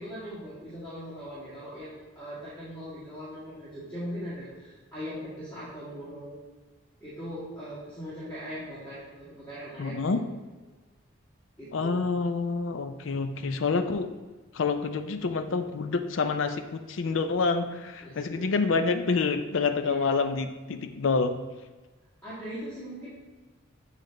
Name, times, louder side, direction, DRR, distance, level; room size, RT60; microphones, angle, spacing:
voice 1, 0.0-6.4 7.0-10.3 11.6-12.0 18.0-18.7 19.8-20.1 22.2-23.1, equal, 10° left, -14 dB, 2.0 m, -40 dB
voice 2, 9.8-10.2 11.7-14.1 14.5-21.3, left 4 dB, 65° left, 8 dB, 0.5 m, -27 dB
8.3 x 3.3 x 3.8 m, 1.3 s
head